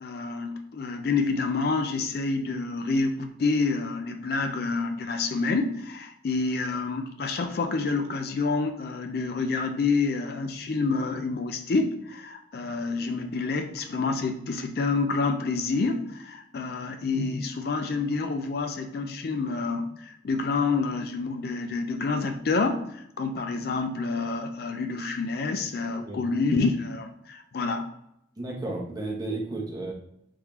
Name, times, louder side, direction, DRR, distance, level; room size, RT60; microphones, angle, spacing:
voice 1, 0.0-27.9, left 4 dB, 55° left, 6 dB, 0.4 m, -28 dB
voice 2, 26.0-26.3 28.4-29.9, right 2 dB, 20° right, -2 dB, 0.8 m, -33 dB
3.5 x 3.2 x 3.0 m, 0.76 s
head